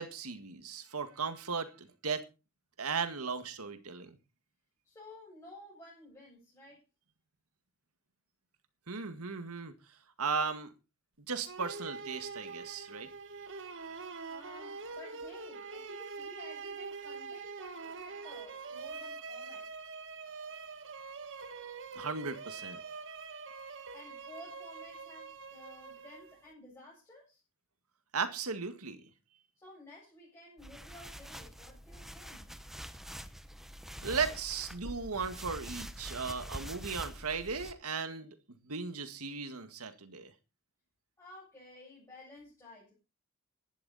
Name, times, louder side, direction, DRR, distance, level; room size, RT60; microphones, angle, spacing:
voice 1, 0.0-2.3 2.8-4.2 8.9-9.7 10.2-10.7 11.3-13.1 13.9-14.0 21.9-22.8 28.1-29.0 34.0-38.4 38.6-40.3, right 5 dB, 80° right, 1.9 m, -36 dB
voice 2, 4.8-6.8 14.3-19.7 23.9-27.4 29.6-32.5 41.2-42.9, left 1 dB, 15° left, 7.8 m, -53 dB
sound 1, 11.5-26.5, right 4 dB, 60° right, 1.6 m, -44 dB
sound 2, 30.6-37.7, equal, ahead, 1.0 m, -45 dB
16.0 x 11.5 x 4.2 m
head